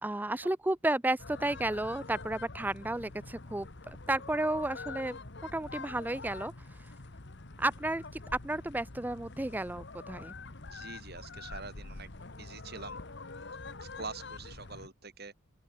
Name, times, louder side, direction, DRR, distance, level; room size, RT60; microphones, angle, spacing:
voice 1, 0.0-5.2 5.5-6.5 7.6-8.0 8.4-10.3, right 1 dB, 10° right, 0.4 m, -32 dB
sound 1, 1.2-14.9, left 3 dB, 55° left, 1.4 m, -45 dB
voice 2, 10.7-12.1 12.4-13.0 13.8-15.3, right 4 dB, 45° right, 7.3 m, -45 dB
open air
head